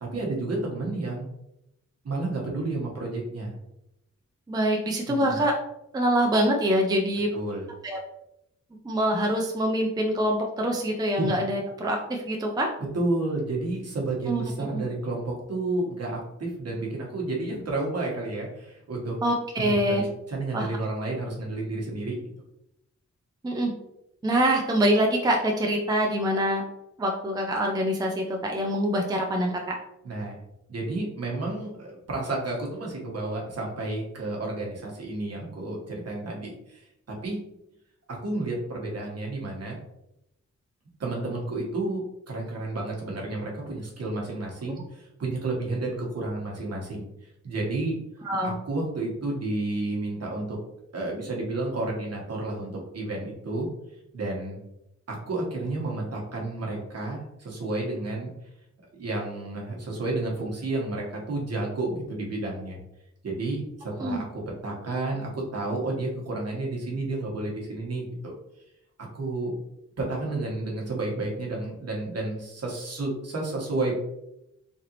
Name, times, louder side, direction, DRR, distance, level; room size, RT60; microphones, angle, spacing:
voice 1, 0.0-1.3 2.0-3.6 5.1-5.4 7.3-7.7 11.2-11.3 12.9-19.2 19.6-22.2 30.0-30.4 30.7-37.4 38.1-39.8 41.0-48.0 48.4-50.6 50.9-53.7 54.1-54.6 55.1-58.3 58.9-62.8 63.2-68.4 69.0-69.6 70.0-73.9, right 2 dB, 55° right, -2 dB, 1.2 m, -31 dB
voice 2, 4.5-5.5 5.9-7.3 7.8-8.0 8.8-12.7 14.3-14.4 14.7-14.8 19.2-20.0 20.5-20.7 23.4-23.7 24.2-26.6 27.0-29.8 48.2-48.5 64.0-64.2, equal, 15° right, 1 dB, 0.4 m, -25 dB
3.8 x 3.3 x 2.8 m, 0.85 s
wide cardioid pair, 135°, 29 cm